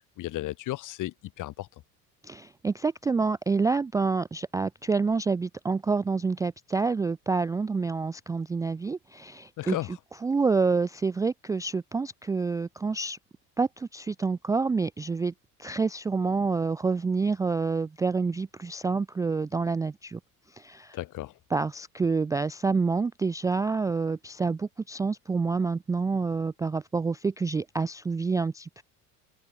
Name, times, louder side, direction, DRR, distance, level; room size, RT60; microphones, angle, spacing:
voice 1, 0.2-1.7 9.6-9.9 20.9-21.3, left 16 dB, 45° left, 1.3 m, -34 dB
voice 2, 2.2-13.2 13.6-15.3 15.6-20.2 20.6-21.0 21.5-28.8, right 4 dB, 10° right, 0.4 m, -28 dB
figure-of-eight pair, 65°, 45 cm